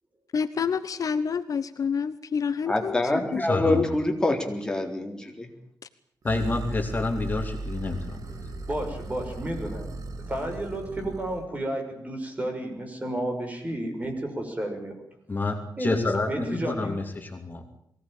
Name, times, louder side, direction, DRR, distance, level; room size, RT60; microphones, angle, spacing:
voice 1, 0.3-3.0 3.3-3.4 3.7-3.8, left 6 dB, 55° left, 12 dB, 1.0 m, -28 dB
voice 2, 2.7-5.5, left 1 dB, 10° left, 2 dB, 3.8 m, -26 dB
voice 3, 3.4-3.9 6.2-8.4 15.3-17.6, left 3 dB, 25° left, 4 dB, 2.9 m, -28 dB
sound 1, 6.3-11.5, right 3 dB, 60° right, 2.5 m, -37 dB
voice 4, 8.7-9.9 10.3-15.0 15.8-15.9 16.3-17.0, right 1 dB, 20° right, 3 dB, 6.2 m, -32 dB
23.0 x 18.0 x 9.1 m, 0.72 s
wide cardioid pair, 145°, 7 cm